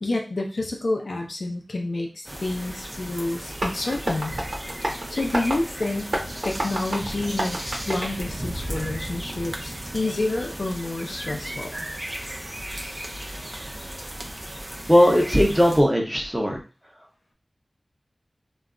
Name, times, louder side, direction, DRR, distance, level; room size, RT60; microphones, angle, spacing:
voice 1, 0.0-4.3 5.1-6.1 6.4-11.9, left 2 dB, 75° left, 2 dB, 0.5 m, -29 dB
sound 1, 2.2-15.8, right 1 dB, 30° right, 0.5 m, -35 dB
Tap, 3.5-9.0, right 1 dB, 70° right, 0.8 m, -32 dB
voice 2, 14.9-16.6, equal, 5° right, 0 dB, 0.8 m, -18 dB
2.3 x 2.0 x 3.6 m, 0.34 s
wide cardioid pair, 45°, 0 cm